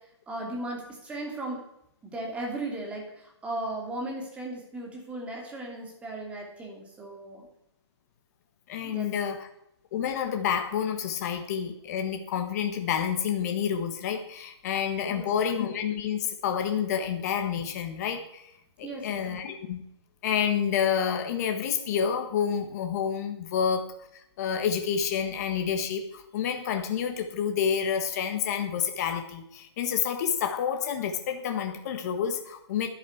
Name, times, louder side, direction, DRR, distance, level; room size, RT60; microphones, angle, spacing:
voice 1, 0.3-1.6 2.0-7.5 8.8-9.1 15.1-15.5 18.8-19.4, right 2 dB, 10° right, 0 dB, 2.9 m, -36 dB
voice 2, 8.7-9.5 9.9-18.5 18.8-19.8 20.2-23.9 24.1-32.9, left 8 dB, 35° left, 5 dB, 1.7 m, -29 dB
11.0 x 10.0 x 8.1 m, 0.79 s
hypercardioid pair, 155°, 15 cm